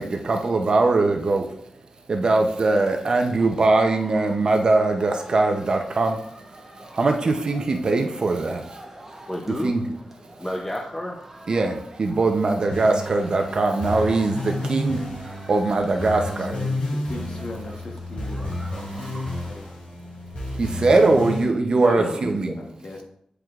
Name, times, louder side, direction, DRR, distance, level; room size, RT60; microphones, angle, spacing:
voice 1, 0.0-1.6 2.1-8.8 9.1-9.2 9.6-9.8 11.5-16.5 20.5-22.5, right 3 dB, 45° right, 4 dB, 0.6 m, -21 dB
sound 1, 2.5-19.7, right 1 dB, 10° right, 0.9 m, -46 dB
voice 2, 9.3-9.7 10.4-11.1 20.9-21.3 22.0-22.7, left 1 dB, 15° left, -1 dB, 0.6 m, -31 dB
sound 2, 12.7-21.4, left 1 dB, 75° left, 2.1 m, -31 dB
voice 3, 16.1-16.8 17.0-19.7 21.8-22.2 22.6-23.0, left 2 dB, 50° left, 1 dB, 1.1 m, -36 dB
9.1 x 4.9 x 2.4 m, 0.72 s
wide cardioid pair, 175°, 2 cm